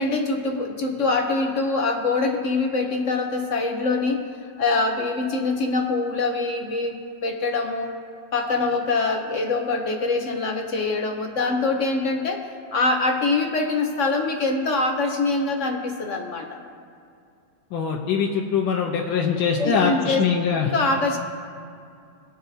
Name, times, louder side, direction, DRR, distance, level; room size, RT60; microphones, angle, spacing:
voice 1, 0.0-4.2 4.6-7.0 7.2-7.9 8.3-12.4 12.7-16.6 19.6-20.2 20.6-21.2, left 3 dB, 55° left, 3 dB, 0.9 m, -24 dB
voice 2, 17.7-20.7, left 6 dB, 85° left, 0 dB, 1.6 m, -23 dB
22.5 x 7.9 x 2.8 m, 2.4 s
omnidirectional pair, 2.1 m